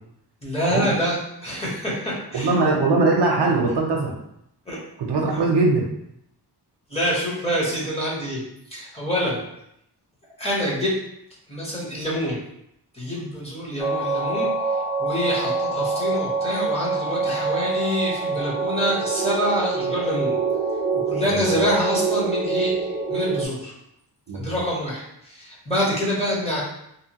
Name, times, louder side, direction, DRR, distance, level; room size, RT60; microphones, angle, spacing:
voice 1, 0.4-2.5 4.7-4.8 6.9-8.4 8.7-9.4 10.4-10.9 11.5-12.4 12.9-14.5 15.0-20.4 20.9-22.7 23.1-23.7 24.4-26.6, equal, 15° left, -7 dB, 0.8 m, -26 dB
voice 2, 2.3-4.1 5.0-5.8 21.2-21.4 24.3-24.6, right 3 dB, 75° right, 0 dB, 0.6 m, -21 dB
sound 1, 13.8-23.5, right 4 dB, 5° right, 0.4 m, -25 dB
2.8 x 2.3 x 2.8 m, 0.78 s
wide cardioid pair, 150°, 42 cm